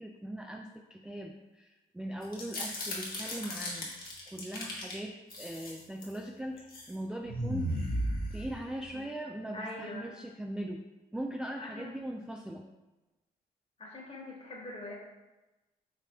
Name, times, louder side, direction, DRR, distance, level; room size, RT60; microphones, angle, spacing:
voice 1, 0.0-3.9 4.3-7.8 8.3-10.8 11.1-12.7, right 1 dB, 5° right, 2 dB, 0.3 m, -40 dB
sound 1, 2.2-4.9 5.3-6.2 6.6-6.9 7.3-8.9, equal, 50° left, 1.4 m, -36 dB
voice 2, 9.5-10.1 11.6-11.9 13.8-14.9, left 2 dB, 30° left, -3 dB, 1.5 m, -43 dB
5.8 x 3.3 x 2.3 m, 1.1 s
supercardioid pair, 55°, 19 cm